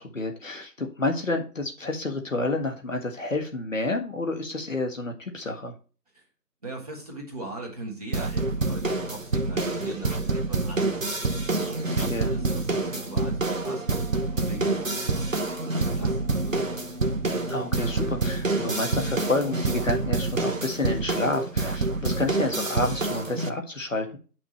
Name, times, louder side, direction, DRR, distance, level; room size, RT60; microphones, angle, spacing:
voice 1, 0.0-5.7 11.9-12.3 17.5-24.2, left 2 dB, 50° left, 3 dB, 1.7 m, -29 dB
voice 2, 6.6-11.6 11.9-13.8 14.3-16.7, right 2 dB, 25° right, -2 dB, 2.2 m, -39 dB
sound 1, 8.1-23.5, right 3 dB, 50° right, 1.0 m, -27 dB
9.0 x 6.1 x 3.1 m, 0.35 s
figure-of-eight pair, 160°, 49 cm